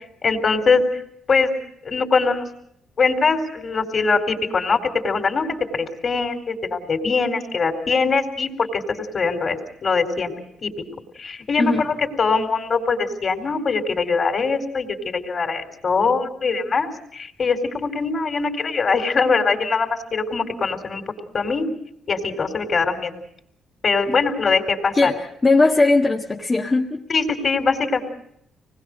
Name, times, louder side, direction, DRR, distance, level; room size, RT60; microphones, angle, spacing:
voice 1, 0.2-0.8 1.3-1.5 1.8-2.4 3.0-5.5 5.7-10.3 10.6-10.7 11.1-21.0 21.3-21.7 22.1-23.1 23.8-25.1 27.1-28.0, left 4 dB, 45° left, 5 dB, 4.0 m, -22 dB
voice 2, 24.9-27.0, left 3 dB, 25° left, -1 dB, 1.6 m, -19 dB
25.5 x 20.0 x 6.6 m, 0.72 s
cardioid pair, 90°, 0 cm